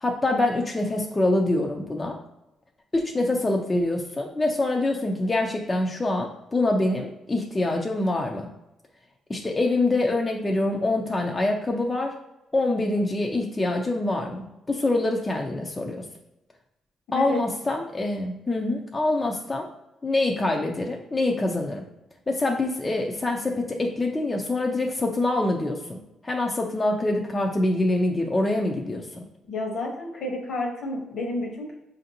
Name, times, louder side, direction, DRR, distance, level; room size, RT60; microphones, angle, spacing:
voice 1, 0.0-2.2 2.9-8.5 9.3-12.2 12.5-16.0 17.1-19.7 20.0-21.8 22.3-26.0 26.2-29.2, left 2 dB, 20° left, 0 dB, 0.4 m, -25 dB
voice 2, 17.1-17.4 29.5-31.8, left 1 dB, 65° left, 1 dB, 1.0 m, -30 dB
4.9 x 2.6 x 2.8 m, 0.92 s
cardioid pair, 90°, 0 cm